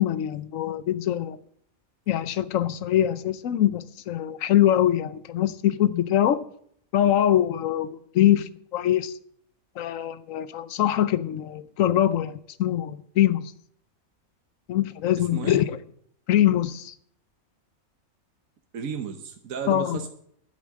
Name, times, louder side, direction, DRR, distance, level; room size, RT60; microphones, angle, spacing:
voice 1, 0.0-1.4 2.1-6.4 6.9-9.1 9.8-13.5 14.7-15.8 16.3-16.9 19.7-20.0, left 11 dB, 70° left, 1.1 m, -23 dB
voice 2, 15.2-15.6 18.7-20.1, right 6 dB, 75° right, 1.4 m, -33 dB
10.5 x 8.3 x 7.4 m
omnidirectional pair, 1.5 m